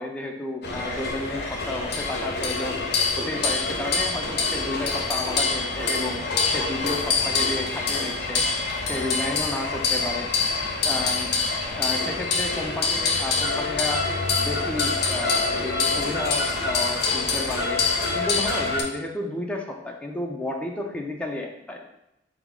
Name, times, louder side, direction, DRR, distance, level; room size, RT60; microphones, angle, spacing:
voice 1, 0.0-2.9 3.2-6.2 6.5-8.4 8.8-10.3 10.8-11.3 11.7-14.0 14.4-17.8 18.2-21.8, left 2 dB, 5° left, 1 dB, 0.4 m, -32 dB
sound 1, 0.6-18.8, left 4 dB, 60° left, 0.5 m, -25 dB
4.5 x 2.0 x 3.6 m, 0.83 s
head